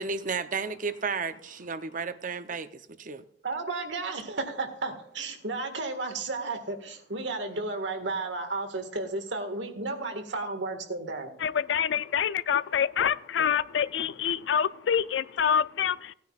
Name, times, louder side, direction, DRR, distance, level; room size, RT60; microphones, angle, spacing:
voice 1, 0.0-3.2, right 5 dB, 45° right, 0.7 m, -33 dB
voice 2, 3.4-11.3, right 3 dB, 90° right, 1.7 m, -33 dB
voice 3, 11.4-16.1, left 8 dB, 85° left, 0.4 m, -26 dB
17.5 x 9.4 x 2.4 m
head